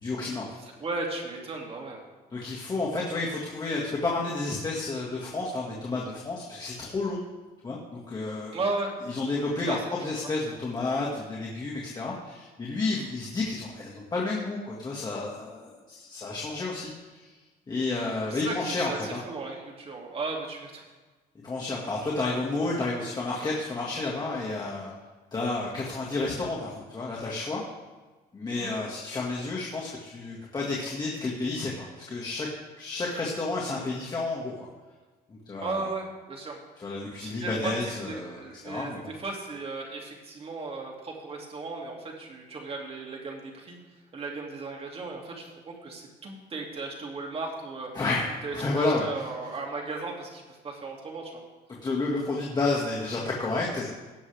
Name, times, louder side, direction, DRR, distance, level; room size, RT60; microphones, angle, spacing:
voice 1, 0.0-0.6 2.3-7.2 7.6-8.6 9.1-17.3 17.7-19.2 21.4-24.9 25.3-27.6 28.3-32.5 32.8-34.5 35.5-35.9 36.8-39.1 47.9-48.3 48.5-49.3 51.8-53.9, left 3 dB, 25° left, -4 dB, 1.9 m, -31 dB
voice 2, 0.6-2.0 8.5-8.9 9.7-9.8 18.2-20.9 28.6-28.7 35.6-36.6 37.2-37.8 38.1-43.8 44.1-47.9 48.4-51.4, right 3 dB, 35° right, 0 dB, 2.5 m, -36 dB
17.5 x 7.2 x 3.5 m, 1.2 s
cardioid pair, 110°, 17 cm